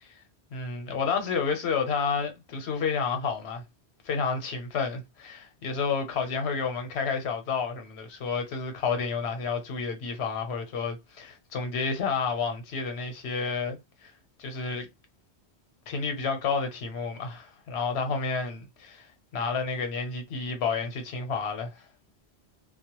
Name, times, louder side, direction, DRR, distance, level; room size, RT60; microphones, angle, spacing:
voice 1, 0.5-3.6 4.0-13.8 14.0-14.1 14.4-14.9 15.9-19.1 19.3-21.8, left 5 dB, 80° left, 1.0 m, -30 dB
2.2 x 2.0 x 2.9 m
omnidirectional pair, 1.1 m